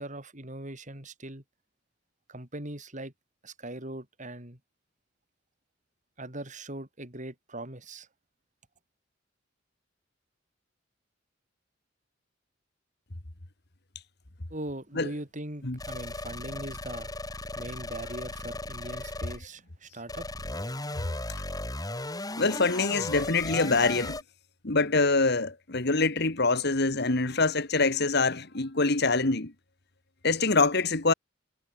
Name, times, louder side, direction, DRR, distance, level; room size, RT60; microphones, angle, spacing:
voice 1, 0.0-1.4 2.3-3.1 3.4-4.6 6.2-8.1 14.5-17.1 17.5-20.3, right 1 dB, 40° right, 6.4 m, -40 dB
sound 1, 15.8-19.4 20.1-24.2, left 2 dB, 20° left, 3.8 m, -36 dB
voice 2, 22.4-24.2 24.6-29.5 30.2-31.1, left 3 dB, 60° left, 2.2 m, -25 dB
head